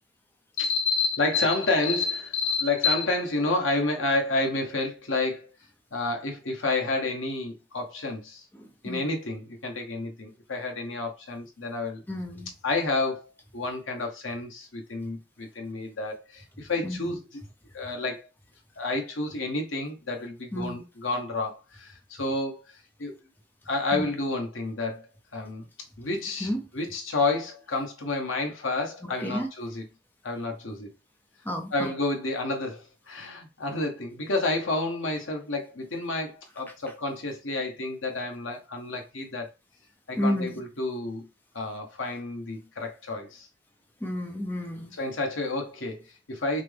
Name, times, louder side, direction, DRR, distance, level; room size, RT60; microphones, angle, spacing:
voice 1, 0.6-5.5 5.9-8.4 8.8-12.0 12.6-17.4 17.7-18.3 18.8-22.6 23.0-23.2 23.7-25.0 25.3-25.7 26.0-29.8 30.2-30.9 31.7-39.5 40.1-41.3 41.5-43.5 45.0-46.6, left 2 dB, 85° left, 1.1 m, -30 dB
voice 2, 8.6-9.0 12.1-12.5 16.8-17.1 20.5-20.8 23.9-24.1 26.4-26.6 29.0-29.5 31.4-31.9 40.2-40.5 44.0-44.9, equal, 10° left, 0.5 m, -31 dB
5.8 x 2.1 x 3.4 m
head